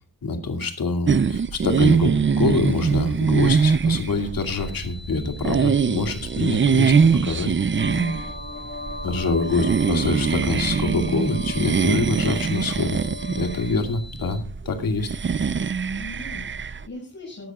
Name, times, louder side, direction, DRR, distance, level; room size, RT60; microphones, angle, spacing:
voice 1, 0.2-6.9 7.2-7.5 9.0-13.0 13.3-15.1, left 3 dB, 85° left, 5 dB, 2.5 m, -25 dB
sound 1, 1.1-16.8, right 6 dB, 35° right, 0.6 m, -23 dB
sound 2, 4.4-14.4, left 2 dB, 80° right, 4.0 m, -45 dB
voice 2, 7.7-8.2 9.4-9.8 15.9-17.5, left 2 dB, 55° left, -3 dB, 5.9 m, -40 dB
sound 3, 7.8-13.7, left 2 dB, 30° left, 4.5 m, -38 dB
18.0 x 13.0 x 2.4 m, 0.33 s
wide cardioid pair, 95°, 34 cm